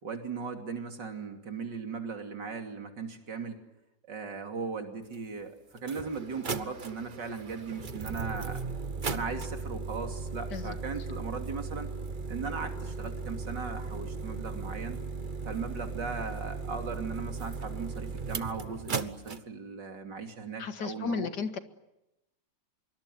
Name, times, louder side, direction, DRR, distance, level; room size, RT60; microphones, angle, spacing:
voice 1, 0.0-3.6 4.0-8.6 9.1-11.9 12.3-15.0 15.5-21.3, right 5 dB, 70° right, 5 dB, 3.5 m, -38 dB
sound 1, 5.1-5.2 5.8-19.4, right 4 dB, 30° right, 1.0 m, -37 dB
voice 2, 20.6-21.6, left 5 dB, 65° left, 10 dB, 2.2 m, -34 dB
25.0 x 23.5 x 9.4 m, 0.91 s
omnidirectional pair, 2.0 m